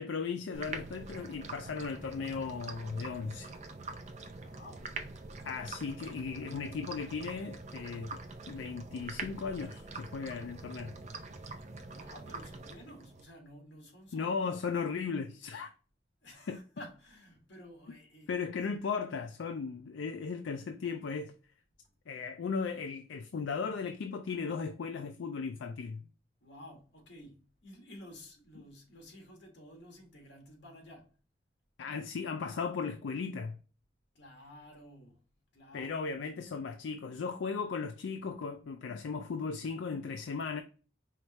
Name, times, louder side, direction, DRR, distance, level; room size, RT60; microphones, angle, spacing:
voice 1, 0.0-3.5 5.4-8.2 8.5-11.0 14.1-15.7 16.5-16.6 18.3-21.3 22.1-26.0 31.8-33.6 35.7-40.6, left 5 dB, 85° left, 0.4 m, -36 dB
sound 1, 0.5-13.2, right 3 dB, 40° right, 0.6 m, -45 dB
voice 2, 4.3-5.0 11.9-14.5 16.2-18.4 26.4-31.2 34.1-36.4, left 1 dB, 70° left, 1.7 m, -53 dB
4.9 x 3.1 x 2.9 m
head